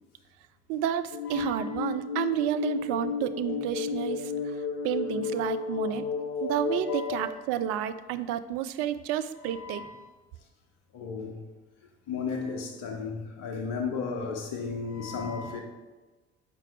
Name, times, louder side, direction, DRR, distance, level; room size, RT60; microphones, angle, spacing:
voice 1, 0.7-4.6 4.8-6.0 6.4-9.8, right 10 dB, 50° right, 12 dB, 0.4 m, -31 dB
sound 1, 1.1-7.3, left 5 dB, 75° left, 0.5 m, -32 dB
voice 2, 1.3-1.7 6.9-7.3 9.4-10.1 10.9-11.4 12.1-15.6, left 5 dB, 55° left, 4 dB, 1.0 m, -34 dB
7.7 x 4.6 x 3.3 m, 1.2 s
figure-of-eight pair, 50°, 32 cm